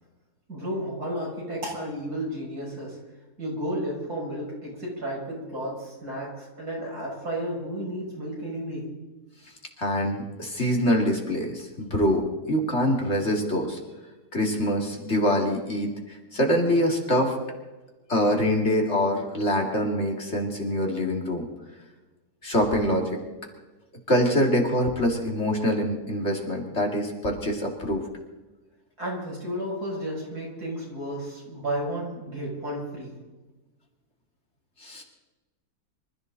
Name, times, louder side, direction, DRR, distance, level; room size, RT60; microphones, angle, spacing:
voice 1, 0.5-3.0 3.4-8.9 29.0-33.1, equal, 75° right, -3 dB, 7.3 m, -32 dB
voice 2, 9.8-13.8 14.3-17.3 18.1-21.5 22.4-23.2 24.1-28.0 34.8-35.0, equal, 45° left, 1 dB, 2.8 m, -24 dB
25.5 x 14.0 x 4.1 m, 1.2 s
omnidirectional pair, 1.7 m